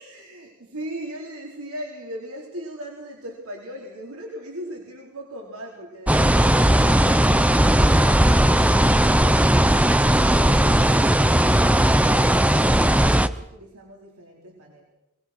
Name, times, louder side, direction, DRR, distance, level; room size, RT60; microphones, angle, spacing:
voice 1, 0.0-14.8, right 1 dB, 75° right, -2 dB, 4.5 m, -39 dB
sound 1, 6.1-13.3, right 1 dB, 5° right, 0.7 m, -17 dB
23.0 x 20.0 x 6.3 m, 0.88 s
head